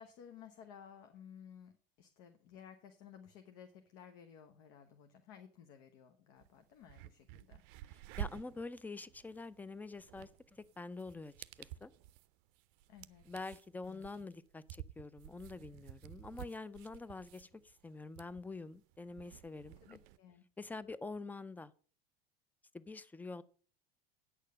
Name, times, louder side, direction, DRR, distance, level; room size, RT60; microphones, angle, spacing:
voice 1, 0.0-7.6 12.9-13.2 13.8-14.3 19.8-20.4, left 8 dB, 55° left, 7 dB, 1.1 m, -56 dB
sound 1, 6.4-6.5 6.8-20.2, right 13 dB, 55° right, 0.5 m, -51 dB
voice 2, 7.9-11.9 13.3-19.8 20.6-21.7 22.7-23.4, left 3 dB, 5° left, 17 dB, 0.5 m, -46 dB
9.1 x 6.6 x 6.4 m, 0.43 s
hypercardioid pair, 85°, 30 cm